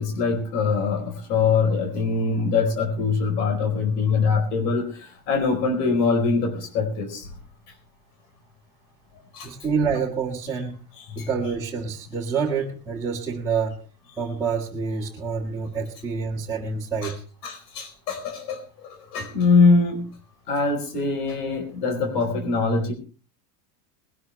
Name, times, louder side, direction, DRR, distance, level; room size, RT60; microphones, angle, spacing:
voice 1, 0.0-7.3 9.3-9.5 11.0-11.3 17.0-17.1 17.4-20.1 20.5-22.9, left 4 dB, 80° left, 5 dB, 4.6 m, -23 dB
voice 2, 9.4-10.8 11.2-13.8 14.2-17.2, right 5 dB, 5° right, -6 dB, 1.8 m, -27 dB
20.5 x 12.5 x 3.4 m, 0.37 s
supercardioid pair, 165°, 46 cm